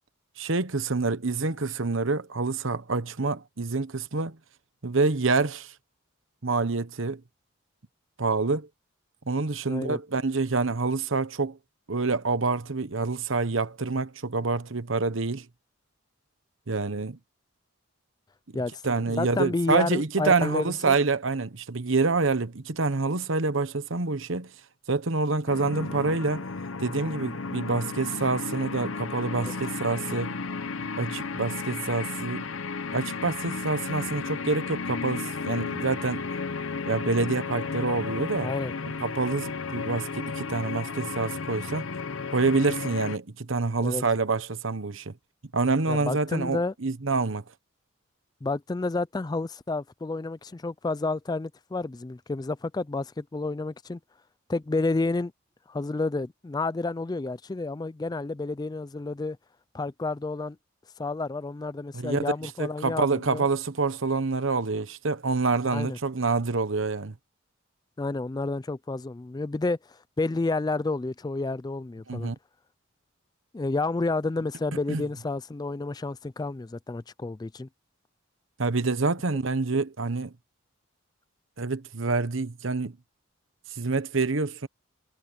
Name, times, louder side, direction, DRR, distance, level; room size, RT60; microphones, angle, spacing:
voice 1, 0.4-4.4 4.8-5.7 6.4-7.2 8.2-8.7 9.3-11.6 11.9-15.5 16.7-17.2 18.8-24.5 24.9-26.4 26.8-30.4 31.0-32.4 32.9-36.3 36.9-38.5 39.0-41.9 42.3-45.1 45.5-47.4 61.9-62.2 62.6-67.1 72.1-72.4 74.9-75.0 78.6-80.3 81.6-82.9 83.7-84.7, right 3 dB, 65° right, 1.1 m, -27 dB
voice 2, 9.7-10.0 18.5-20.9 29.4-29.5 38.4-38.7 43.8-44.0 45.9-46.7 48.4-54.0 54.5-55.3 55.7-59.4 59.7-60.6 61.0-63.5 65.7-66.0 68.0-72.3 73.5-77.7, left 3 dB, 20° left, 0.3 m, -30 dB
sound 1, 25.5-43.2, left 4 dB, 70° left, 0.8 m, -34 dB
head